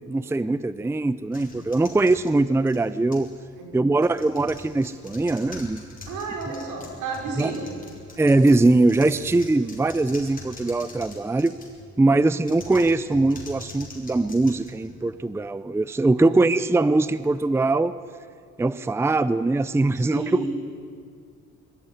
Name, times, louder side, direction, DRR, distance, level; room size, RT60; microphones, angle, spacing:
voice 1, 0.1-3.3 3.7-5.9 7.4-7.5 8.2-11.5 12.0-17.9 18.6-20.5, right 2 dB, 10° right, 15 dB, 0.5 m, -21 dB
sound 1, 1.3-3.4 3.9-11.9 12.4-15.3, left 2 dB, 30° left, 5.3 m, -43 dB
voice 2, 3.6-3.9 6.1-7.7 12.1-12.3 16.2-16.5 19.9-20.5, right 3 dB, 85° right, 1 dB, 5.3 m, -33 dB
22.5 x 14.5 x 10.0 m, 2.2 s
cardioid pair, 90°, 30 cm